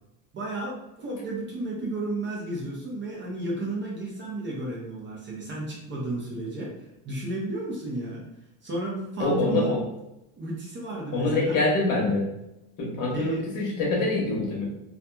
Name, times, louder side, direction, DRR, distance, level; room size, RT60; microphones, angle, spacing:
voice 1, 0.3-6.7 7.0-8.2 8.6-9.8 10.4-11.6 13.1-13.5, right 2 dB, 30° right, -3 dB, 0.7 m, -33 dB
voice 2, 9.2-9.8 11.1-12.3 12.8-14.7, left 2 dB, 55° left, -2 dB, 1.1 m, -25 dB
2.8 x 2.5 x 2.2 m, 0.90 s
supercardioid pair, 125°, 39 cm